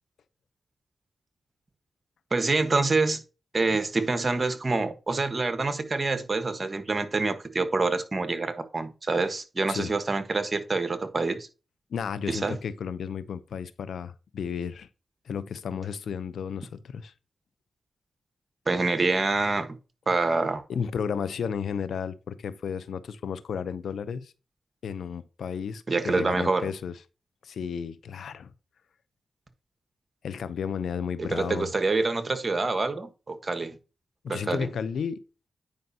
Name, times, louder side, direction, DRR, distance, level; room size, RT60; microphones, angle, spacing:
voice 1, 2.3-3.2 3.5-11.5 12.3-12.6 18.7-19.8 20.1-20.6 25.9-26.7 31.2-33.8 34.3-34.7, right 3 dB, 40° right, 1.3 m, -26 dB
voice 2, 11.9-14.9 15.3-17.1 20.7-24.3 24.8-26.9 27.4-28.5 30.2-31.7 34.2-35.2, left 7 dB, 80° left, 0.5 m, -33 dB
9.5 x 5.1 x 2.8 m
supercardioid pair, 45°, 0 cm